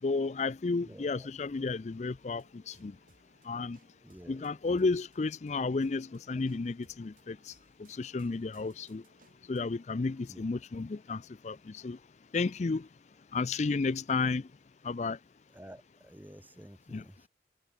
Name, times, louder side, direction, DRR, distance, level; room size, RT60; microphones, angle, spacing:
voice 1, 0.0-3.0 3.4-3.8 4.3-9.1 9.4-12.0 12.3-12.9 13.3-14.5 14.8-15.2 16.9-17.1, left 3 dB, 40° left, 0.4 m, -32 dB
voice 2, 0.8-1.3 4.0-4.5 10.3-10.4 15.5-17.3, right 1 dB, 10° right, 0.9 m, -51 dB
sound 1, 2.1-9.8, right 2 dB, 50° right, 5.0 m, -66 dB
head